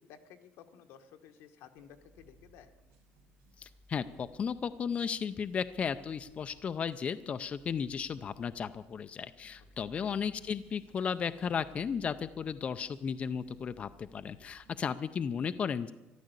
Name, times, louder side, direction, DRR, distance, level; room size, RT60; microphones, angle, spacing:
voice 1, 0.0-2.7 9.8-10.1, left 8 dB, 85° left, 6 dB, 1.4 m, -55 dB
sound 1, 1.8-15.4, right 1 dB, 90° right, 2.2 m, -62 dB
voice 2, 3.6-15.9, left 7 dB, 30° left, 11 dB, 0.4 m, -35 dB
13.5 x 12.0 x 8.0 m, 1.0 s
cardioid pair, 150°, 4 cm